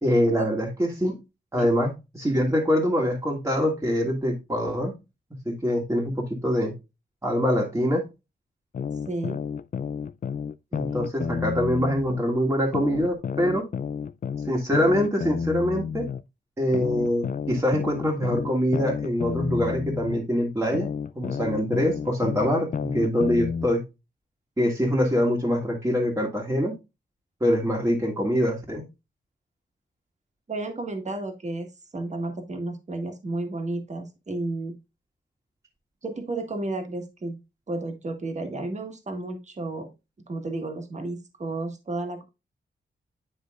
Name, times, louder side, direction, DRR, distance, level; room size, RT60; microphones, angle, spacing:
voice 1, 0.0-1.2 1.5-1.9 2.1-4.9 5.4-6.7 7.2-8.0 10.7-13.6 14.5-16.1 16.6-20.9 21.1-23.8 24.6-26.7 27.4-28.8, equal, 15° right, -1 dB, 1.7 m, -24 dB
sound 1, 8.7-12.2 12.7-16.2 16.7-20.2 20.7-23.7, left 7 dB, 45° left, 0.4 m, -31 dB
voice 2, 9.1-9.4 30.5-31.7 31.9-34.8 36.0-37.4 37.7-39.9 40.3-42.2, right 2 dB, 35° right, 5 dB, 1.6 m, -32 dB
9.8 x 5.0 x 2.4 m, 0.25 s
wide cardioid pair, 120°, 19 cm